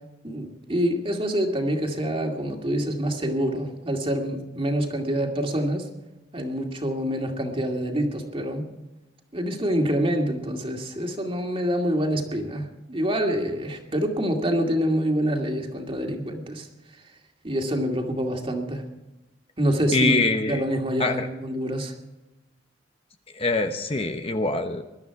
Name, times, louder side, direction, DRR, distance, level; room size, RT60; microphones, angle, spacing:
voice 1, 0.2-5.9 6.3-8.7 9.3-16.7 17.4-18.8 19.6-21.9, equal, 30° right, 3 dB, 2.3 m, -26 dB
voice 2, 19.9-20.6 21.0-21.3 23.3-24.8, left 3 dB, 30° left, 7 dB, 0.9 m, -24 dB
21.5 x 12.5 x 4.7 m, 1.0 s
head